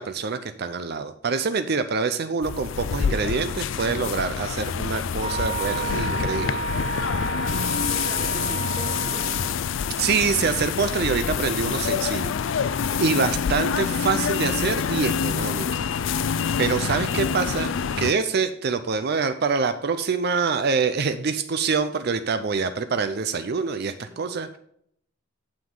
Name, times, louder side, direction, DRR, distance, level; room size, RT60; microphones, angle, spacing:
voice 1, 0.0-6.6 10.0-15.7 16.6-24.6, right 5 dB, 50° right, 10 dB, 0.5 m, -25 dB
sound 1, 2.4-18.1, left 7 dB, 65° left, 0.4 m, -26 dB
Wind instrument woodwind instrument, 5.2-9.6, right 5 dB, 30° right, 0.8 m, -31 dB
voice 2, 7.3-9.5 21.3-21.5 24.0-24.4, left 1 dB, 5° left, 1 dB, 1.6 m, -41 dB
8.8 x 7.3 x 3.8 m, 0.68 s
head